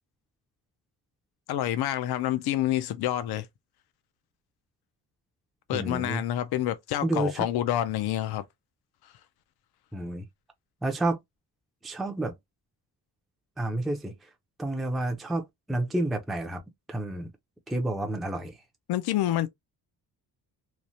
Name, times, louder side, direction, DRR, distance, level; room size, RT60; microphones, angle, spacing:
voice 1, 1.5-3.5 5.7-8.4 18.9-19.5, left 12 dB, 75° left, 0.5 m, -28 dB
voice 2, 5.7-6.2 7.0-7.5 9.9-10.3 10.8-11.2 11.8-12.4 13.6-14.3 14.6-16.6 16.9-17.3 17.7-18.6, right 1 dB, ahead, 0.4 m, -30 dB
3.1 x 2.0 x 2.6 m
wide cardioid pair, 150°, 39 cm